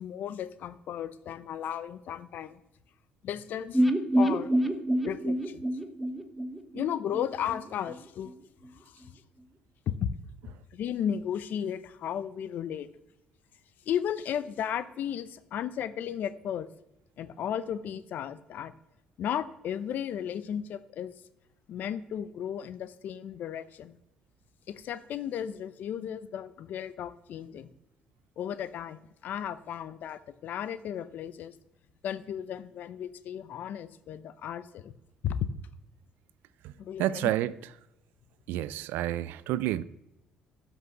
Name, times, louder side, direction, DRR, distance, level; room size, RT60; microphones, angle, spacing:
voice 1, 0.0-2.6 3.2-3.8 4.2-4.5 5.0-5.6 6.7-8.3 8.9-9.1 9.9-10.1 10.7-12.9 13.9-16.7 17.2-18.7 19.2-21.1 21.7-23.9 24.7-27.7 28.4-31.5 32.0-34.9 35.2-35.5 36.8-37.3, left 9 dB, 65° left, 0.8 m, -34 dB
sound 1, 3.7-7.6 7.9-8.0 8.3-8.4, right 1 dB, ahead, 1.1 m, -27 dB
voice 2, 37.0-37.6 38.5-39.8, right 14 dB, 85° right, 0.5 m, -29 dB
12.0 x 6.1 x 6.1 m
cardioid pair, 90°, 3 cm